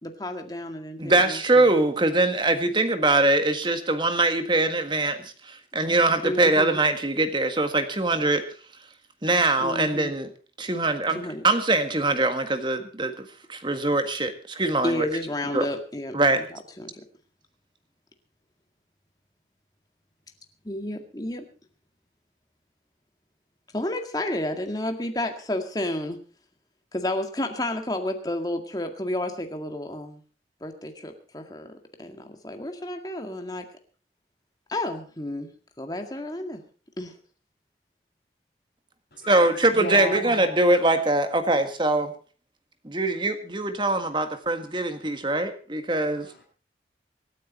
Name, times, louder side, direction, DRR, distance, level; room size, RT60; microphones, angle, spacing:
voice 1, 0.0-1.7 6.2-6.8 9.6-10.1 11.1-11.5 14.8-16.9 20.6-21.4 23.7-26.2 26.9-30.2 30.6-33.7 34.7-35.5 35.8-36.6 37.0-37.1, left 1 dB, 20° left, 5 dB, 2.0 m, -31 dB
voice 2, 1.0-5.2 5.5-8.4 9.2-10.3 10.6-15.1 15.5-15.6 16.1-16.4 39.3-42.1 42.8-46.3, right 2 dB, 25° right, 8 dB, 1.7 m, -23 dB
voice 3, 39.1-40.8 46.0-46.4, equal, 55° left, -6 dB, 6.9 m, -35 dB
25.5 x 9.5 x 4.2 m, 0.39 s
head